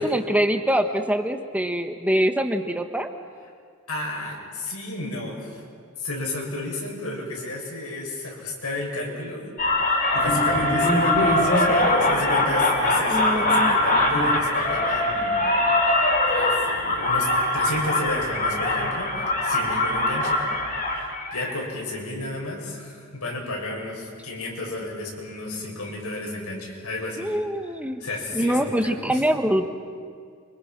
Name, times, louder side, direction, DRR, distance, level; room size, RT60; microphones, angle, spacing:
voice 1, 0.0-3.1 13.1-13.8 27.2-28.0 28.3-29.7, equal, 5° right, 6 dB, 1.4 m, -24 dB
voice 2, 3.9-5.6 6.0-9.4 9.9-15.5 16.3-19.1 19.4-20.4 21.3-27.3 28.0-29.2, left 2 dB, 85° left, -1 dB, 7.2 m, -32 dB
sound 1, 9.6-21.6, left 1 dB, 40° left, 4.3 m, -22 dB
29.5 x 26.0 x 6.2 m, 2.1 s
head